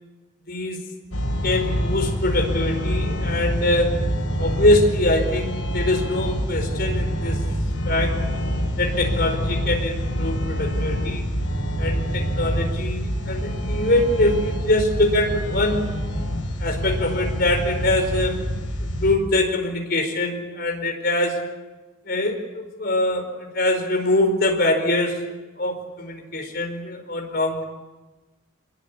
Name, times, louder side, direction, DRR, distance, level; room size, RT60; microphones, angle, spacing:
voice 1, 0.5-0.8 1.4-4.0 4.4-7.4 7.9-8.2 8.8-11.2 11.8-15.9 16.6-18.4 18.8-21.4 22.1-25.2 25.6-27.6, left 1 dB, 45° left, 3 dB, 4.8 m, -23 dB
sound 1, 1.1-19.2, equal, 85° left, 5.9 m, -26 dB
25.0 x 22.0 x 8.5 m, 1.2 s
head